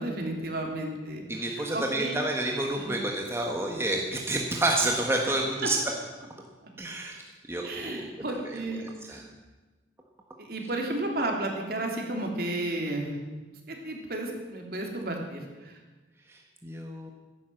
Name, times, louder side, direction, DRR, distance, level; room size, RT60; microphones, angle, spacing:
voice 1, 0.0-2.2 2.8-3.0 7.6-9.2 10.4-13.1 13.7-15.8, right 1 dB, 55° right, 2 dB, 2.9 m, -33 dB
voice 2, 1.3-5.8 6.8-7.2 7.5-9.3 16.3-17.1, right 1 dB, 15° right, 1 dB, 1.3 m, -30 dB
15.0 x 10.5 x 7.7 m, 1.2 s
head